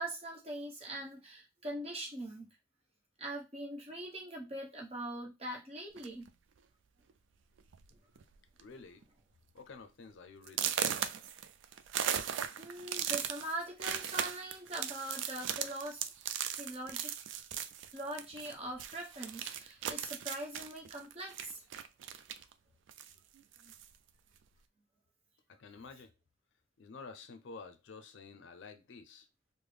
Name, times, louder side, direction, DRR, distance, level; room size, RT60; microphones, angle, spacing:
voice 1, 0.0-2.5 3.2-6.3 7.9-8.0 12.6-16.1 16.5-17.1 17.9-21.6, right 1 dB, 30° right, 1.0 m, -42 dB
sound 1, 6.0-6.3 7.1-7.2 7.6-7.9 8.2-8.6 9.0-9.1 9.6-9.7 10.5-18.5 18.8-22.5 22.9-23.9, right 9 dB, 70° right, 0.3 m, -38 dB
voice 2, 8.6-9.1 9.5-10.7 25.5-26.1 26.8-29.3, left 4 dB, 70° left, 0.4 m, -50 dB
3.5 x 2.1 x 3.2 m
head